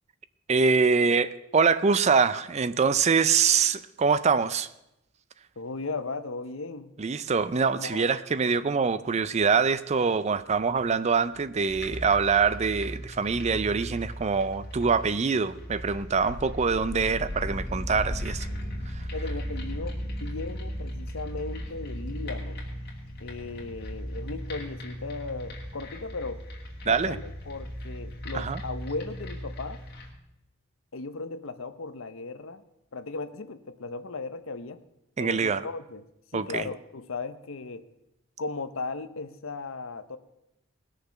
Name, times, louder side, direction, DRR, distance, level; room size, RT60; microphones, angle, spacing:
voice 1, 0.5-4.7 7.0-18.5 26.9-27.2 28.3-28.6 35.2-35.6 36.3-36.7, right 5 dB, 30° right, 14 dB, 0.4 m, -24 dB
voice 2, 5.6-6.9 7.7-8.1 19.1-22.6 23.2-26.4 26.8-29.8 30.9-32.6 32.9-34.8 35.2-36.0 36.3-37.8 38.4-40.2, left 3 dB, 65° left, 11 dB, 0.8 m, -36 dB
sound 1, 11.7-30.1, equal, 50° left, 2.5 m, -37 dB
19.5 x 6.6 x 5.7 m, 0.88 s
head